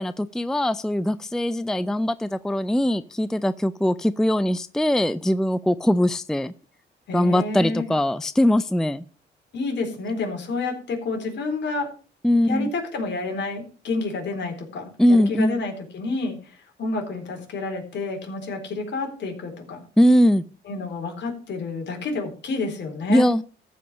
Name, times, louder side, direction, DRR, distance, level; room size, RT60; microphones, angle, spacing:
voice 1, 0.0-6.5 7.1-9.0 12.2-12.7 15.0-15.6 20.0-20.4 23.1-23.4, left 1 dB, 5° left, 14 dB, 0.5 m, -21 dB
voice 2, 7.1-7.9 9.5-11.9 12.3-16.4 16.8-19.8 20.7-23.3, left 3 dB, 65° left, 2 dB, 4.1 m, -29 dB
14.0 x 5.6 x 6.4 m, 0.38 s
cardioid pair, 90°, 20 cm